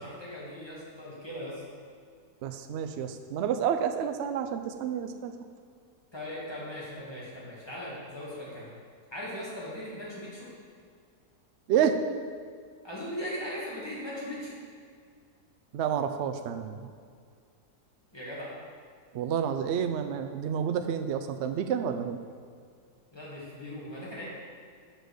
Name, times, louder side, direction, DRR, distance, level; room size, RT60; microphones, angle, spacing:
voice 1, 0.0-1.6 6.1-8.7 9.1-10.5 12.8-14.6 18.1-18.5 23.1-24.2, equal, 15° left, -7 dB, 2.0 m, -39 dB
voice 2, 2.4-5.3 11.7-12.0 15.7-16.9 19.1-22.2, right 8 dB, 70° right, 7 dB, 0.6 m, -29 dB
6.0 x 5.2 x 6.4 m, 2.1 s
omnidirectional pair, 1.7 m